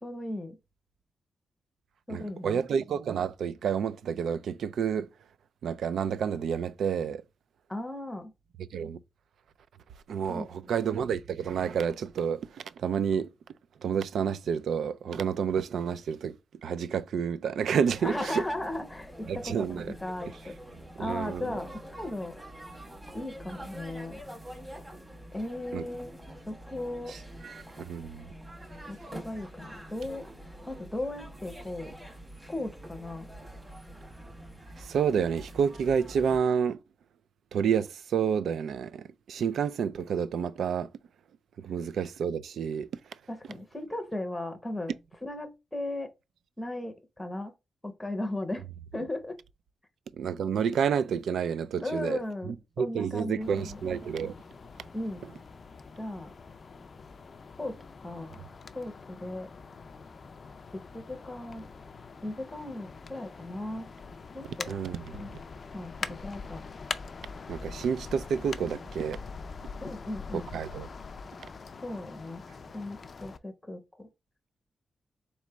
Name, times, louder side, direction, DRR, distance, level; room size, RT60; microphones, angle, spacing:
voice 1, 0.0-0.6 2.1-2.6 7.7-8.3 10.3-10.7 18.0-20.5 21.0-22.4 23.1-24.2 25.3-26.1 26.5-27.1 28.9-30.2 30.7-31.9 32.5-33.3 43.3-44.9 45.2-46.1 46.6-47.5 47.8-48.7 48.9-49.4 51.8-53.8 54.9-55.2 56.0-56.3 57.6-58.4 58.7-59.5 60.7-61.7 62.2-63.9 64.3-64.7 65.1-65.4 65.7-66.6 69.8-70.5 71.8-72.4 72.7-74.1, left 1 dB, 5° left, 0.7 m, -37 dB
voice 2, 2.1-5.1 5.6-7.2 8.7-9.0 10.1-12.4 12.8-13.3 13.8-16.4 16.6-18.4 19.3-19.9 21.0-21.6 25.7-25.8 27.1-27.2 27.4-28.3 34.8-36.8 37.5-40.9 41.6-42.9 50.2-52.2 52.5-54.3 64.7-65.2 67.5-69.2 70.5-70.9, right 7 dB, 75° right, 0.3 m, -29 dB
sound 1, 17.8-36.4, equal, 15° right, 1.2 m, -46 dB
sound 2, 53.4-73.4, left 4 dB, 35° left, 0.3 m, -44 dB
4.1 x 3.1 x 3.3 m
wide cardioid pair, 180°, 0 cm